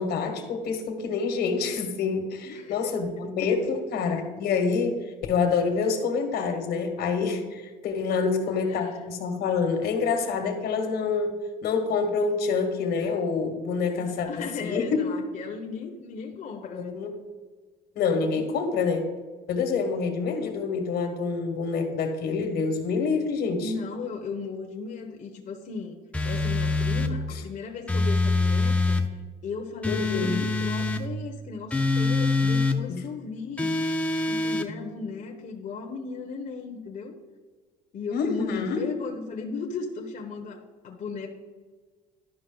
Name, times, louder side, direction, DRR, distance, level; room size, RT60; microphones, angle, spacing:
voice 1, 0.0-15.0 16.7-17.1 17.9-19.0 19.5-23.7 27.3-27.4 29.8-30.4 32.9-33.0 38.1-38.9, left 5 dB, 75° left, 6 dB, 1.4 m, -27 dB
voice 2, 2.4-3.8 8.2-9.0 14.0-17.0 18.3-18.5 23.6-25.9 26.2-29.0 29.4-33.7 34.2-37.1 37.9-41.3, left 4 dB, 50° left, 2 dB, 0.9 m, -36 dB
sound 1, 26.1-27.1 27.9-29.1 29.8-31.0 31.7-32.8 33.6-34.7, left 3 dB, 5° left, 0.6 m, -24 dB
11.5 x 5.2 x 3.9 m, 1.4 s
cardioid pair, 110°, 17 cm